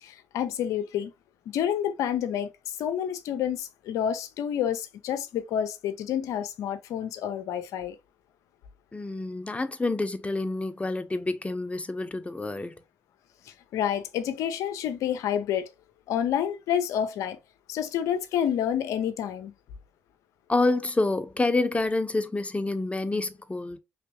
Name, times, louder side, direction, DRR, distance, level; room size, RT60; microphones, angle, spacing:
voice 1, 0.0-1.1 1.5-8.0 13.5-15.7 16.1-17.4 17.7-19.5, left 9 dB, 85° left, 0.7 m, -29 dB
voice 2, 8.9-12.8 20.5-23.8, left 2 dB, 25° left, 1.1 m, -28 dB
5.0 x 3.5 x 3.0 m
supercardioid pair, 45°, 5 cm